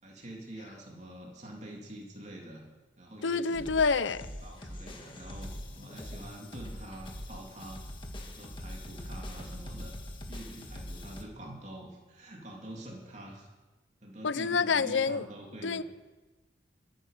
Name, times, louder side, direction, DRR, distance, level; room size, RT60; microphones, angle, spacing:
voice 1, 0.0-2.7 3.0-3.7 4.4-7.8 8.2-9.9 10.3-13.5 14.0-15.8, right 1 dB, 40° right, 3.1 m, -46 dB
voice 2, 3.2-4.3 14.2-15.3 15.6-15.8, left 5 dB, 90° left, 0.7 m, -27 dB
sound 1, 3.5-11.3, left 1 dB, 25° left, 1.7 m, -43 dB
23.0 x 9.3 x 6.7 m
head